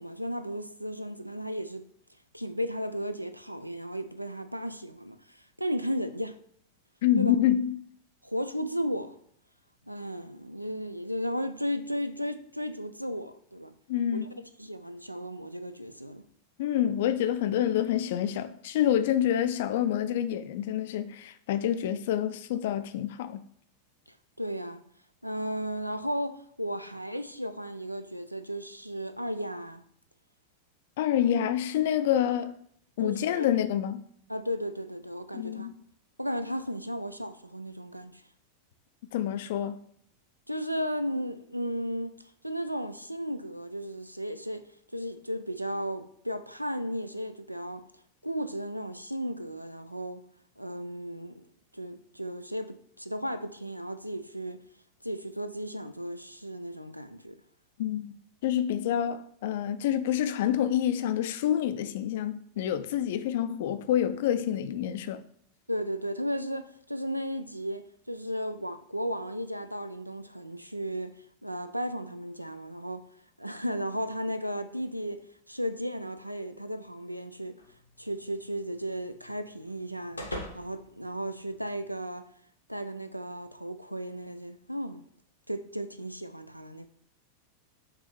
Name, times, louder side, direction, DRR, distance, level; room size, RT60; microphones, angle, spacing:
voice 1, 0.0-1.9 2.3-6.4 7.2-7.3 8.2-9.2 9.9-13.7 14.1-14.2 14.6-16.2 24.1-24.8 25.2-29.8 33.0-33.5 34.3-35.7 36.2-38.2 40.5-42.2 42.4-44.7 44.9-47.8 48.2-50.2 50.6-51.5 51.7-54.6 55.0-57.4 65.7-73.1 73.4-77.6 78.0-82.3 82.7-85.0 85.5-86.9, equal, 90° right, 0.3 m, -35 dB
voice 2, 7.0-7.8 13.9-14.4 16.6-23.4 31.0-32.5 33.0-34.0 35.3-35.7 39.1-39.8 57.8-58.2 58.4-65.2, left 10 dB, 55° left, 0.3 m, -27 dB
sound 1, 77.6-82.0, left 1 dB, 85° left, 0.7 m, -45 dB
4.9 x 3.1 x 3.1 m
figure-of-eight pair, 90°, 0 cm